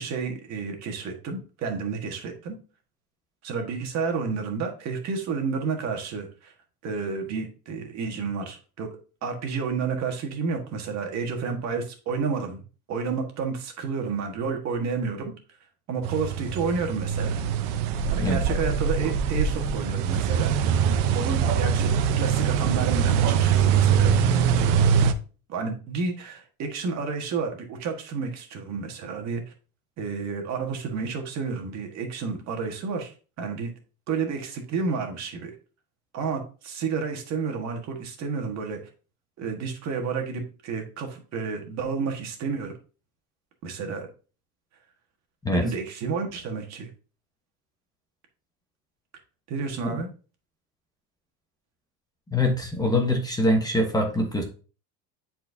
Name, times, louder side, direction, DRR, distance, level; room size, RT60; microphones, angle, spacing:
voice 1, 0.0-2.6 3.4-6.5 6.8-8.9 9.2-12.6 12.9-15.3 15.9-17.4 18.1-20.5 21.1-21.9 22.1-24.2 24.6-24.8 25.5-29.4 30.0-33.1 33.4-33.7 34.1-35.5 36.1-38.8 39.4-42.7 43.6-44.1 45.5-46.9 49.5-50.1, right 5 dB, 45° right, 4 dB, 1.6 m, -30 dB
sound 1, 16.0-25.1, right 7 dB, 85° right, 0.8 m, -23 dB
voice 2, 52.3-54.4, left 1 dB, 10° left, 2 dB, 1.1 m, -23 dB
10.5 x 4.5 x 2.7 m, 0.36 s
cardioid pair, 150°, 37 cm